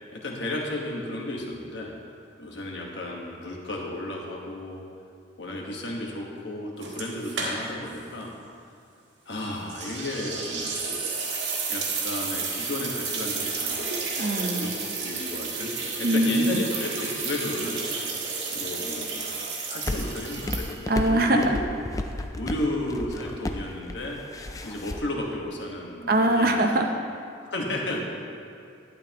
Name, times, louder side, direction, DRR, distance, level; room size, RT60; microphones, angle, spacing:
voice 1, 0.1-1.9 2.4-4.8 5.4-8.3 9.2-10.9 11.7-13.9 14.5-15.7 16.0-17.8 18.5-19.4 19.6-21.6 22.4-24.2 24.6-26.6 27.4-28.0, left 1 dB, 65° left, -1 dB, 1.4 m, -33 dB
sound 1, 6.8-7.9 8.2-8.3 9.7-21.0, right 4 dB, 70° right, 1.5 m, -32 dB
voice 2, 14.2-14.8 16.0-16.7 20.9-21.6 26.1-26.9, right 1 dB, 50° right, 4 dB, 0.7 m, -22 dB
sound 2, 19.8-25.0, left 1 dB, 15° left, 0.3 m, -33 dB
11.5 x 9.3 x 3.0 m, 2.3 s
head